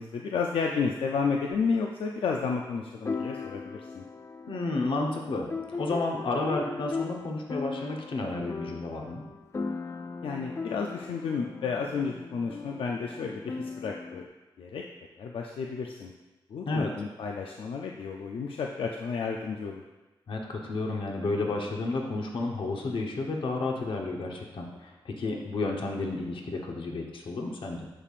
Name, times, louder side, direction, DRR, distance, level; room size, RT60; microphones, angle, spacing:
voice 1, 0.0-4.0 10.2-14.2 14.6-14.8 15.2-16.1 16.5-19.8, left 5 dB, 85° left, 1 dB, 0.5 m, -31 dB
sound 1, 1.5-1.6 3.0-14.3, left 4 dB, 30° left, 0.4 m, -38 dB
voice 2, 4.5-9.2 16.7-16.9 20.3-27.9, left 2 dB, 70° left, 1 dB, 1.0 m, -31 dB
8.8 x 6.6 x 2.5 m, 1.1 s
cardioid pair, 85°, 9 cm